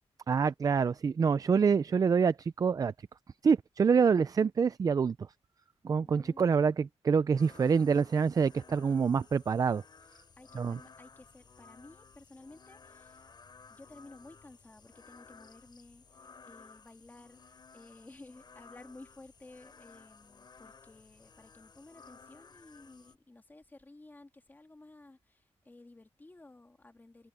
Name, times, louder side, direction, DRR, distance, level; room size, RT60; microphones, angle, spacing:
voice 1, 0.3-2.9 3.4-5.1 5.8-9.8 10.6-10.8, right 6 dB, 35° right, 0.3 m, -26 dB
voice 2, 6.0-6.5 10.4-13.3 13.7-16.0 16.4-27.3, left 2 dB, 15° left, 2.6 m, -54 dB
sound 1, 7.4-23.1, left 5 dB, 40° left, 4.8 m, -57 dB
wide cardioid pair, 165°, 11 cm